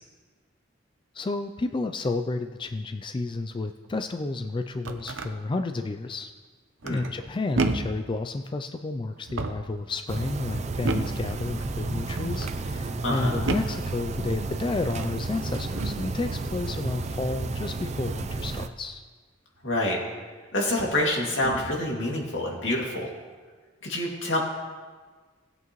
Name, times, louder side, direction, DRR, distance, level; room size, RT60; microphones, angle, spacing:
voice 1, 1.1-6.3 6.9-19.0, left 3 dB, 25° left, 7 dB, 0.4 m, -31 dB
sound 1, 4.5-5.3 6.8-7.2 7.5-8.0 9.2-9.8 10.8-11.3 12.1-12.6 13.5-13.8 14.8-15.2 15.7-16.1 17.3-17.6 19.7-19.8 20.7-21.0 21.4-21.8, right 3 dB, 90° right, 0.8 m, -31 dB
sound 2, 10.1-18.7, right 3 dB, 35° right, 0.5 m, -32 dB
voice 2, 13.0-13.4 19.6-20.0 20.5-23.1 23.8-24.4, left 1 dB, 75° left, -2 dB, 2.4 m, -27 dB
18.5 x 8.1 x 3.1 m, 1.5 s
head